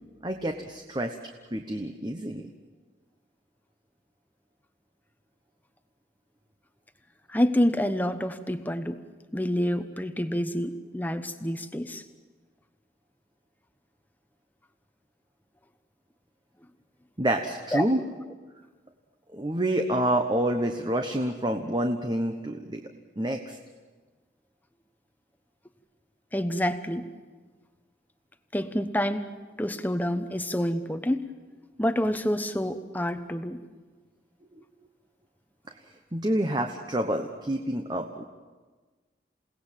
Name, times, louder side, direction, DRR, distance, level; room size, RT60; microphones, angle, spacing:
voice 1, 0.2-1.1 1.5-2.4 17.2-18.0 19.3-22.8 23.2-23.6 36.1-38.2, right 1 dB, 25° right, 4 dB, 1.1 m, -28 dB
voice 2, 7.3-9.0 9.3-12.0 17.7-17.8 26.3-27.1 28.5-29.3 29.6-31.3 31.8-33.6, equal, 10° left, 10 dB, 1.0 m, -27 dB
28.5 x 18.0 x 7.5 m, 1.4 s
head